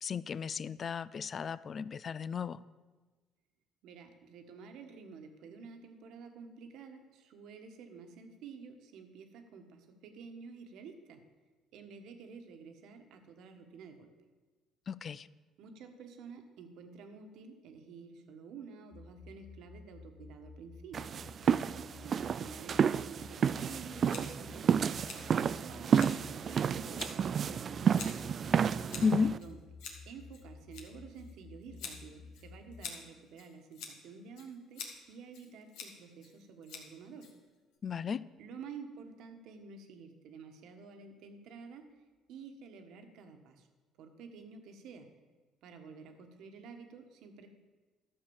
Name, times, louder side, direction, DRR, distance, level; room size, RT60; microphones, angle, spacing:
voice 1, 0.0-2.6 14.9-15.3 29.0-29.3 37.8-38.2, left 5 dB, 40° left, 18 dB, 0.4 m, -33 dB
voice 2, 3.8-11.2 11.7-14.1 15.6-21.2 21.9-26.0 26.5-28.0 29.2-29.6 30.0-37.3 38.4-41.9 42.3-43.7 44.0-45.1 45.6-47.5, right 5 dB, 75° right, 6 dB, 1.4 m, -50 dB
sound 1, 18.9-32.9, left 4 dB, 20° left, 1.0 m, -53 dB
sound 2, 20.9-29.4, right 7 dB, 45° right, 0.3 m, -30 dB
Scissors, 24.1-37.8, left 5 dB, 85° left, 1.8 m, -49 dB
12.5 x 6.5 x 7.1 m, 1.3 s
cardioid pair, 110°, 0 cm